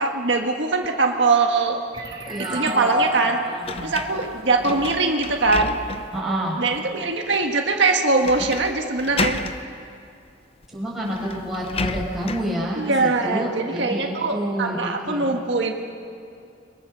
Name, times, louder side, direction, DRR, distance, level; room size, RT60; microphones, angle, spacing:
voice 1, 0.0-1.8 2.4-3.4 3.8-5.8 6.6-9.4 12.8-15.7, right 3 dB, 75° right, 2 dB, 1.7 m, -22 dB
sound 1, 1.9-5.4, right 1 dB, 25° right, 1.9 m, -30 dB
voice 2, 2.2-3.9 6.1-6.6 10.7-15.4, equal, ahead, -5 dB, 6.2 m, -29 dB
sound 2, 3.6-6.2 6.7-6.8 8.2-8.7 9.0-9.6 10.6-10.7 11.0-12.5, left 3 dB, 30° left, 0.8 m, -30 dB
29.5 x 22.5 x 6.9 m, 2.4 s
head